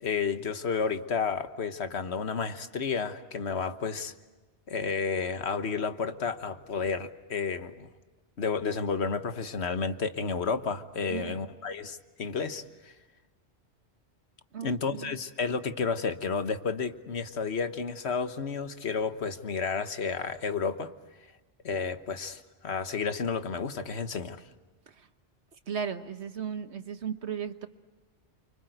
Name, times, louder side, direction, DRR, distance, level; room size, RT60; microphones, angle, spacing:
voice 1, 0.0-4.1 4.7-7.9 8.4-12.6 14.6-20.9 21.6-24.4, left 5 dB, 70° left, 10 dB, 1.5 m, -31 dB
voice 2, 11.1-11.4 14.5-15.2 25.7-27.7, right 7 dB, 75° right, 9 dB, 1.5 m, -36 dB
29.0 x 25.0 x 7.9 m, 1.2 s
omnidirectional pair, 1.1 m